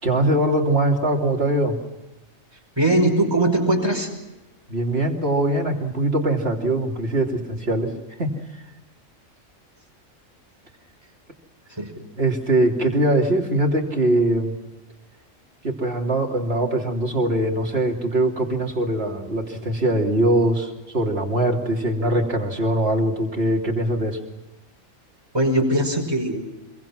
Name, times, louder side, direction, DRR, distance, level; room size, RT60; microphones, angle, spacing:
voice 1, 0.0-1.8 4.7-7.9 8.2-8.3 12.2-14.5 15.6-24.2, right 1 dB, 50° right, 1 dB, 3.3 m, -22 dB
voice 2, 2.8-4.1 11.7-11.9 25.3-26.4, right 1 dB, 20° right, 1 dB, 5.7 m, -20 dB
26.0 x 23.5 x 6.1 m, 1.1 s
omnidirectional pair, 1.4 m